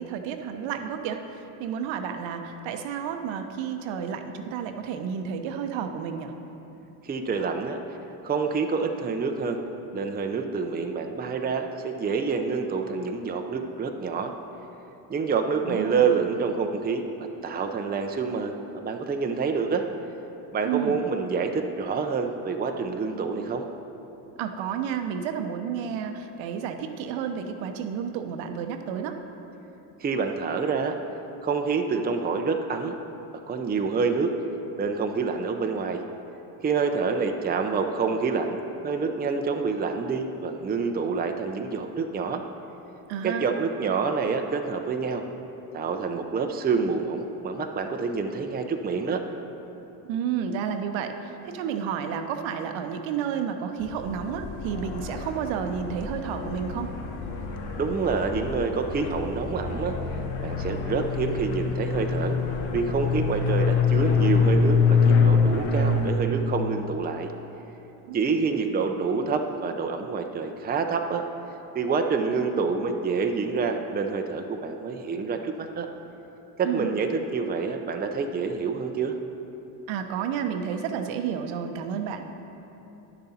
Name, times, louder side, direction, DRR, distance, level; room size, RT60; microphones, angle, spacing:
voice 1, 0.0-6.3 15.7-16.1 20.6-21.0 24.4-29.2 43.1-43.5 50.1-51.1 51.4-56.9 68.0-68.2 76.6-76.9 79.9-82.2, right 7 dB, 70° right, 6 dB, 0.8 m, -31 dB
voice 2, 7.0-7.8 8.2-9.6 9.9-14.3 15.1-17.1 17.4-19.8 20.5-23.6 30.0-31.0 31.4-32.9 33.5-34.3 34.8-36.0 36.6-38.6 38.8-42.4 43.2-45.2 45.7-49.2 57.7-60.0 60.4-62.4 62.7-67.3 68.1-71.2 71.7-75.9 76.6-79.2, right 5 dB, 20° right, 4 dB, 0.6 m, -27 dB
sound 1, 53.8-66.1, left 5 dB, 70° left, 1.0 m, -25 dB
10.0 x 6.8 x 4.2 m, 3.0 s
supercardioid pair, 85°, 49 cm